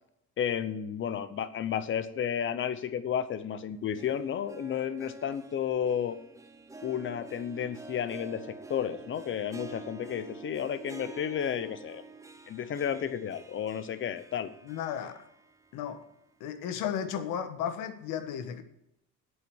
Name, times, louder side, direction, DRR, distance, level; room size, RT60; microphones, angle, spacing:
voice 1, 0.4-6.2 6.8-12.0 12.5-14.5, left 8 dB, 40° left, 0.8 m, -32 dB
Harp, 3.7-15.9 16.2-16.3 17.2-17.3, right 3 dB, 10° right, 0.8 m, -48 dB
voice 2, 14.6-15.2 15.7-16.0 16.4-18.6, left 8 dB, 90° left, 1.4 m, -34 dB
8.5 x 8.1 x 7.1 m
cardioid pair, 155°, 31 cm